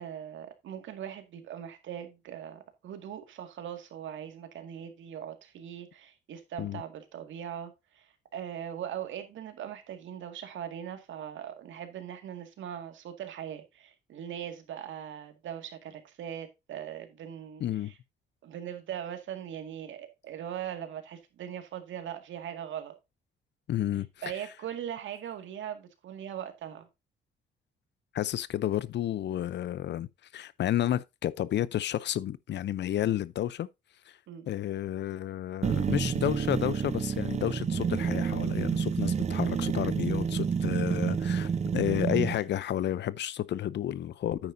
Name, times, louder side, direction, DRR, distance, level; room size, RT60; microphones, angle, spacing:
voice 1, 0.0-17.6 18.4-22.9 24.2-26.9 34.3-34.5, right 9 dB, 75° right, 2.0 m, -40 dB
voice 2, 17.6-17.9 23.7-24.1 24.4-24.5 28.1-33.7 34.0-34.2 34.5-44.5, left 12 dB, 65° left, 0.6 m, -31 dB
sound 1, 35.6-42.4, right 6 dB, 35° right, 0.7 m, -29 dB
9.4 x 9.1 x 2.7 m
cardioid pair, 90°, 20 cm